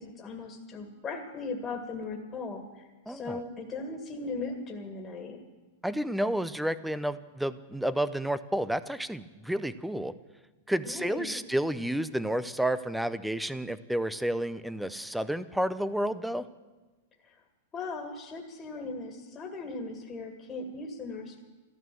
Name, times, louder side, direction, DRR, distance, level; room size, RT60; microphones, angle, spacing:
voice 1, 0.0-5.4 10.8-11.4 17.2-17.4 17.7-21.4, left 3 dB, 20° left, 2 dB, 2.0 m, -38 dB
voice 2, 3.1-3.4 5.8-10.1 10.7-16.5, right 1 dB, ahead, 14 dB, 0.5 m, -30 dB
14.0 x 12.0 x 7.6 m, 1.2 s
supercardioid pair, 145°, 0 cm